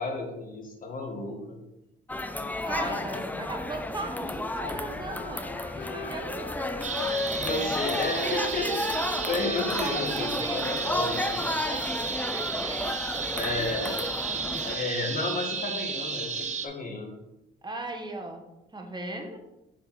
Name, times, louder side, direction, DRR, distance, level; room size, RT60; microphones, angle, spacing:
voice 1, 0.0-1.6 7.4-11.4 13.3-14.1 14.6-17.1, left 3 dB, 45° left, 0 dB, 2.1 m, -32 dB
sound 1, 2.1-14.8, left 1 dB, 10° left, 0.5 m, -33 dB
voice 2, 2.6-6.8 9.2-10.7 11.7-13.3 17.6-18.4 18.7-19.4, right 1 dB, 20° right, 3 dB, 1.4 m, -38 dB
Wind instrument woodwind instrument, 4.6-11.0, left 2 dB, 60° left, 2.1 m, -38 dB
sound 2, 6.8-16.7, right 5 dB, 35° right, 1.1 m, -33 dB
6.8 x 5.2 x 4.2 m, 0.93 s
cardioid pair, 90°, 20 cm